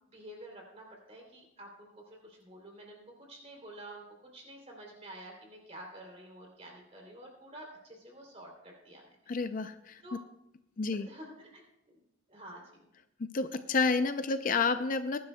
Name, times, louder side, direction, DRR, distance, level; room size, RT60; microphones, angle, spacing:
voice 1, 0.0-4.0 4.3-9.1 10.0-10.2 11.0-11.6 12.3-12.9, right 1 dB, 30° right, 0 dB, 3.0 m, -49 dB
voice 2, 9.3-10.2 10.8-11.1 13.2-15.2, left 4 dB, 40° left, 10 dB, 0.4 m, -30 dB
20.5 x 11.0 x 2.2 m, 0.84 s
head